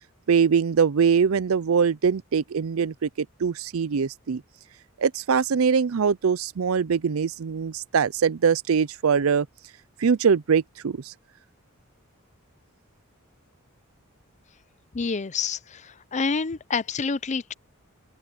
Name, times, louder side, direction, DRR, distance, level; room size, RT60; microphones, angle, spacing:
voice 1, 0.3-4.4 5.0-9.5 10.0-11.1, right 6 dB, 75° right, 0.5 m, -22 dB
voice 2, 14.9-17.5, left 5 dB, 35° left, 0.6 m, -28 dB
open air
head